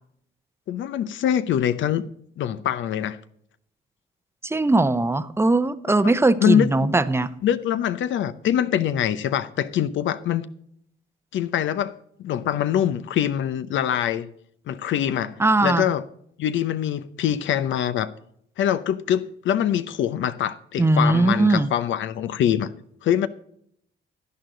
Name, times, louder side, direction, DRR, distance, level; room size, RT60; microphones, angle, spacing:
voice 1, 0.7-2.0 2.4-3.2 6.0-6.1 6.4-6.7 7.4-10.5 11.3-11.9 12.2-14.3 14.7-15.3 15.6-16.0 16.4-18.1 18.6-22.7 23.0-23.3, left 10 dB, 75° left, 0.8 m, -24 dB
voice 2, 4.4-7.3 15.4-15.8 20.8-21.7, right 2 dB, 10° right, 0.7 m, -20 dB
11.0 x 10.5 x 3.9 m
cardioid pair, 90°, 20 cm